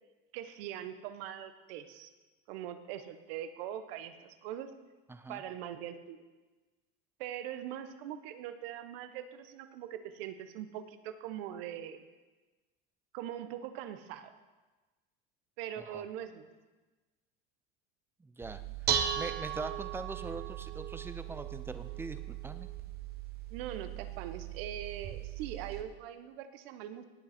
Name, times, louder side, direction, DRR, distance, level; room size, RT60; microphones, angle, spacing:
voice 1, 0.3-2.1 2.5-4.7 5.3-6.2 7.2-12.0 13.1-14.3 15.6-16.5 23.5-27.0, right 10 dB, 80° right, 10 dB, 1.1 m, -42 dB
voice 2, 5.1-5.4 15.8-16.0 18.4-18.6 18.9-22.7, right 3 dB, 10° right, 11 dB, 0.6 m, -42 dB
Dishes pots and pans, 18.4-25.8, right 9 dB, 35° right, 0.9 m, -38 dB
18.0 x 8.1 x 4.3 m, 1.2 s
supercardioid pair, 135°, 29 cm